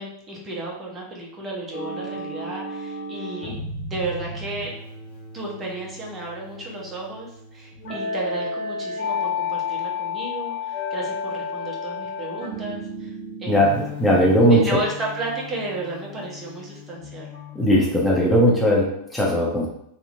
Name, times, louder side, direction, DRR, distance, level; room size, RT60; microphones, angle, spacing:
voice 1, 0.0-3.6 3.9-4.7 5.3-13.1 13.4-13.8 14.4-17.3, right 2 dB, 25° right, -3 dB, 0.9 m, -33 dB
sound 1, 1.7-17.7, left 4 dB, 55° left, 1.3 m, -33 dB
voice 2, 13.5-14.7 17.5-19.7, equal, 5° left, -4 dB, 0.8 m, -18 dB
2.8 x 2.5 x 2.5 m, 0.74 s
hypercardioid pair, 100°, 0 cm